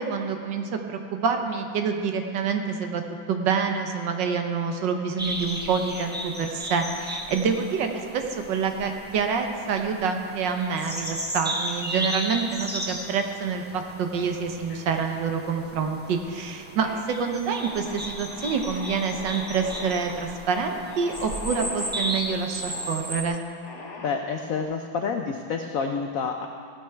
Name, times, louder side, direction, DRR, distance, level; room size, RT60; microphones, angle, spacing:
voice 1, 0.0-3.0 3.3-7.9 8.1-23.4, right 5 dB, 70° right, 5 dB, 1.5 m, -27 dB
sound 1, 5.2-23.2, equal, 10° right, 0.6 m, -35 dB
sound 2, 14.7-15.4 15.8-16.3 16.6-17.0 17.6-22.2 22.7-23.0 23.6-24.6, left 3 dB, 55° left, 2.0 m, -42 dB
voice 2, 24.0-26.5, left 5 dB, 75° left, 4 dB, 0.7 m, -28 dB
16.0 x 9.0 x 4.5 m, 2.2 s
omnidirectional pair, 2.1 m